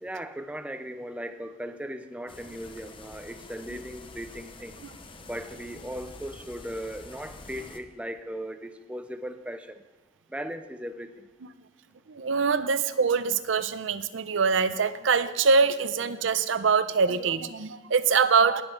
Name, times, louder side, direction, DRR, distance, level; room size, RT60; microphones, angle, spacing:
voice 1, 0.0-4.8 5.3-9.8 10.3-11.3, equal, 5° right, 9 dB, 0.5 m, -38 dB
sound 1, 2.3-7.8, left 3 dB, 30° left, 0.8 m, -47 dB
voice 2, 12.1-18.6, right 5 dB, 80° right, 13 dB, 0.6 m, -24 dB
19.0 x 7.9 x 3.9 m, 1.2 s
head